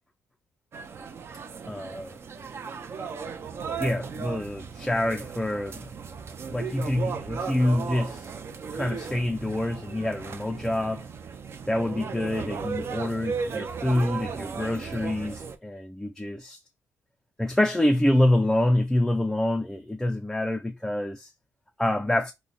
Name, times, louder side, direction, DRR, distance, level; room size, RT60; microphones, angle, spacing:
sound 1, 0.7-15.6, right 5 dB, 50° right, 0.5 m, -36 dB
voice 1, 1.7-2.2 3.8-5.9 6.5-8.3 8.7-11.1 11.7-16.6 17.4-21.3 21.8-22.3, left 1 dB, 5° left, 0.4 m, -26 dB
3.1 x 2.1 x 3.9 m
cardioid pair, 85°, 5 cm